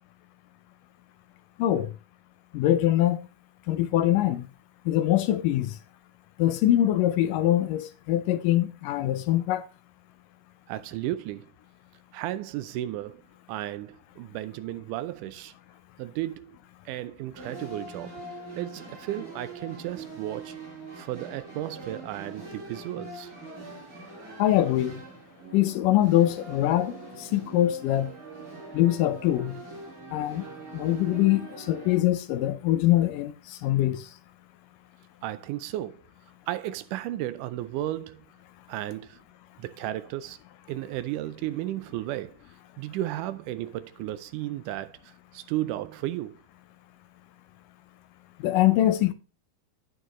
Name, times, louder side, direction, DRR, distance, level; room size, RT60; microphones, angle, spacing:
voice 1, 1.6-1.9 2.5-3.2 3.7-4.5 4.9-5.8 6.4-9.7 24.4-25.0 25.5-28.1 28.7-29.5 30.1-30.4 30.7-34.1 48.4-49.1, left 13 dB, 80° left, 2.0 m, -23 dB
voice 2, 10.7-11.5 12.1-13.2 13.5-15.5 16.0-16.6 16.9-18.2 18.6-20.6 20.9-23.3 35.2-36.0 36.5-38.3 38.7-39.2 39.6-40.4 40.7-42.4 42.8-46.4, right 14 dB, 85° right, 1.8 m, -34 dB
sound 1, 17.3-32.0, right 2 dB, 30° right, 5.0 m, -43 dB
9.4 x 8.7 x 3.0 m
omnidirectional pair, 4.2 m